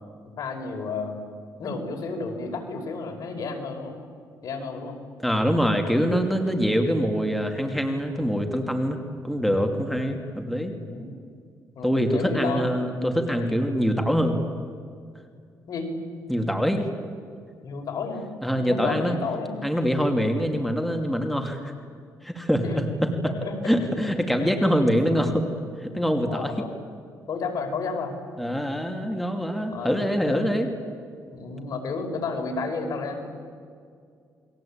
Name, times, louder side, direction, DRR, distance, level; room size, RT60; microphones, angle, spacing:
voice 1, 0.4-1.2 1.6-3.9 4.4-5.0 10.8-11.1 11.7-12.7 13.3-13.4 15.7-15.9 17.6-18.3 18.5-19.6 22.6-22.8 23.2-23.5 24.0-24.5 24.8-24.9 25.8-26.7 27.3-28.1 29.7-30.5 31.3-33.3, left 4 dB, 60° left, 3 dB, 5.5 m, -32 dB
voice 2, 5.2-9.0 9.2-10.7 11.8-14.4 16.3-16.9 18.4-19.1 19.6-21.7 22.2-22.8 23.2-23.3 23.6-25.5 25.8-26.5 28.4-30.7, equal, ahead, 3 dB, 2.7 m, -24 dB
29.5 x 22.0 x 8.9 m, 2.2 s
cardioid pair, 115°, 7 cm